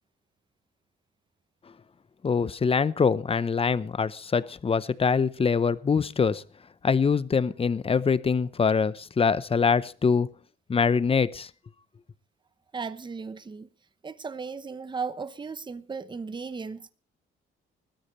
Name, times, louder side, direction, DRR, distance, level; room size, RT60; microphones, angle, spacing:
voice 1, 2.2-6.4 6.8-10.3 10.7-11.5, left 5 dB, 30° left, 0.8 m, -24 dB
voice 2, 12.7-13.7 14.0-16.9, right 5 dB, 25° right, 0.9 m, -36 dB
20.0 x 13.0 x 3.2 m
cardioid pair, 90°, 20 cm